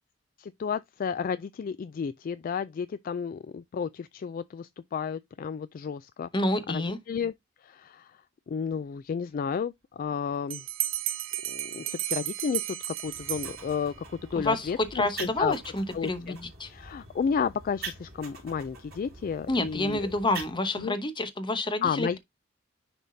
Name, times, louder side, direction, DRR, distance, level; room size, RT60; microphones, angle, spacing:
voice 1, 0.4-6.3 6.7-7.3 7.6-8.2 8.5-10.6 11.5-13.9 14.3-15.6 15.9-16.4 16.7-20.1 20.8-21.0 21.8-22.2, left 6 dB, 45° left, 0.3 m, -32 dB
voice 2, 6.3-7.0 14.4-16.7 19.5-22.2, left 2 dB, 25° left, 1.0 m, -29 dB
Bell, 10.5-14.1, right 14 dB, 90° right, 0.7 m, -33 dB
sound 1, 13.0-20.5, right 3 dB, 50° right, 3.4 m, -44 dB
10.0 x 3.5 x 2.7 m
head